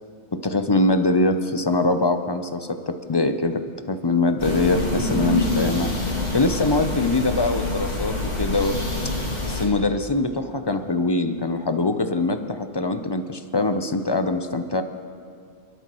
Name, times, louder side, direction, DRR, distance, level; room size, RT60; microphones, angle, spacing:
voice 1, 0.3-3.6 3.9-5.9 6.3-8.8 9.4-14.8, left 2 dB, 30° left, 7 dB, 0.4 m, -23 dB
sound 1, 4.4-9.7, left 2 dB, 55° left, 2.7 m, -26 dB
29.5 x 12.5 x 3.0 m, 2.2 s
omnidirectional pair, 1.3 m